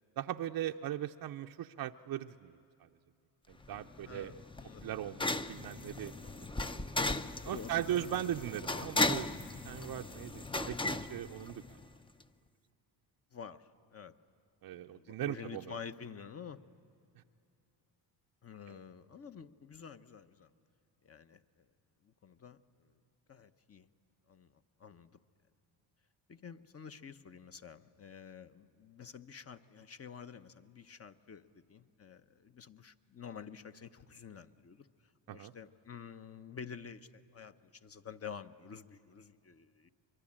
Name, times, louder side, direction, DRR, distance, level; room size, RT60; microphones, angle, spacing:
voice 1, 0.2-2.9 3.5-4.4 4.8-5.2 5.5-6.1 6.7-7.0 7.4-9.3 9.6-11.8 14.6-15.7 18.7-18.8 35.3-35.5, right 11 dB, 55° right, 4 dB, 0.6 m, -39 dB
sound 1, 3.6-12.0, left 2 dB, 10° left, 0.6 m, -37 dB
voice 2, 4.0-4.9 5.2-5.3 6.2-6.4 7.3-8.2 11.0-11.2 13.3-14.1 14.7-16.6 18.4-20.5 21.0-21.4 22.0-22.6 23.3-23.9 24.3-24.5 24.8-25.2 26.3-34.9 35.3-39.9, left 6 dB, 30° left, 10 dB, 0.9 m, -49 dB
23.5 x 23.5 x 8.7 m, 2.6 s
cardioid pair, 85°, 46 cm